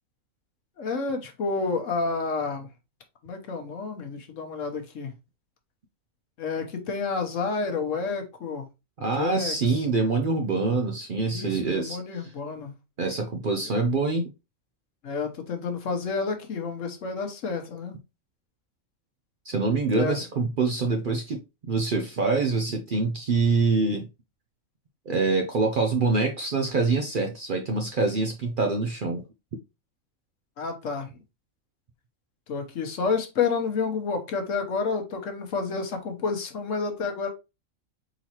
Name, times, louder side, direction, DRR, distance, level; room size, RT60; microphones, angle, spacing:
voice 1, 0.8-2.7 3.2-5.1 6.4-8.7 9.2-9.8 11.3-12.7 15.0-18.0 19.9-20.2 30.6-31.1 32.5-37.3, left 4 dB, 70° left, 1.2 m, -30 dB
voice 2, 9.0-12.3 13.0-14.3 19.5-24.1 25.1-29.2, right 3 dB, 55° right, 0.6 m, -25 dB
4.2 x 4.0 x 2.9 m
omnidirectional pair, 1.4 m